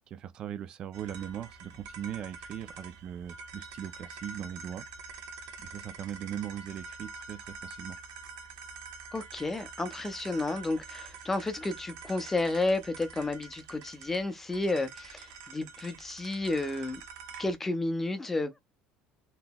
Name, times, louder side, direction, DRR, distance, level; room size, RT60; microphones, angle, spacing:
voice 1, 0.1-4.8 5.6-8.0, right 10 dB, 40° right, 0.4 m, -39 dB
sound 1, 0.9-17.5, right 5 dB, 85° right, 1.0 m, -46 dB
voice 2, 9.1-17.0 17.4-18.6, left 2 dB, 10° left, 0.5 m, -31 dB
3.7 x 2.9 x 2.2 m
cardioid pair, 150°, 2 cm